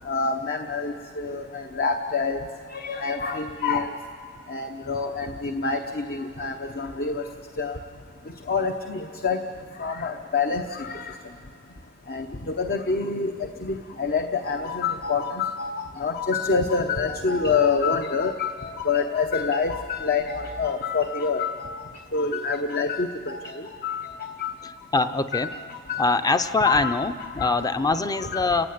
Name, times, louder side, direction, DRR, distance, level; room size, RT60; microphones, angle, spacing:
voice 1, 0.0-2.4 2.7-3.9 4.5-7.3 7.6-7.8 8.5-9.4 9.8-11.2 12.1-13.3 13.6-21.8 22.1-24.7 25.3-27.5 28.2-28.7, left 4 dB, 45° left, 6 dB, 1.0 m, -27 dB
voice 2, 24.9-25.5 26.0-28.7, left 3 dB, 20° left, 10 dB, 0.7 m, -23 dB
29.5 x 16.5 x 9.5 m, 2.3 s
head